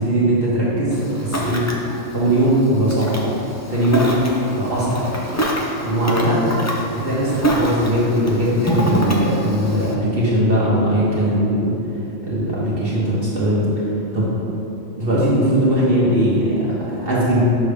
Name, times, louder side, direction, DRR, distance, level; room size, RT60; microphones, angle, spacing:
voice 1, 0.0-1.7 2.1-3.2 3.7-4.2 4.5-5.0 5.8-6.5 6.9-11.7 12.2-13.7 14.1-14.3 15.0-17.4, right 1 dB, 50° right, -8 dB, 1.3 m, -19 dB
Ocean, 0.9-9.9, equal, 25° left, 0.3 m, -25 dB
6.9 x 5.4 x 3.5 m, 2.9 s
omnidirectional pair, 1.3 m